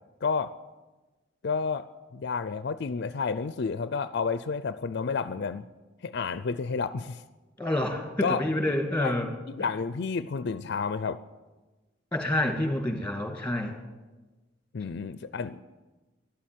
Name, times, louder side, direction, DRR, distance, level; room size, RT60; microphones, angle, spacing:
voice 1, 0.2-0.5 1.4-1.9 2.1-5.6 6.0-7.2 8.2-8.4 9.0-9.1 9.5-11.2 14.7-15.6, left 5 dB, 60° left, 14 dB, 0.4 m, -30 dB
voice 2, 7.6-9.3 12.1-13.7, left 1 dB, 5° left, 4 dB, 2.3 m, -28 dB
13.0 x 11.5 x 9.1 m, 1.2 s
head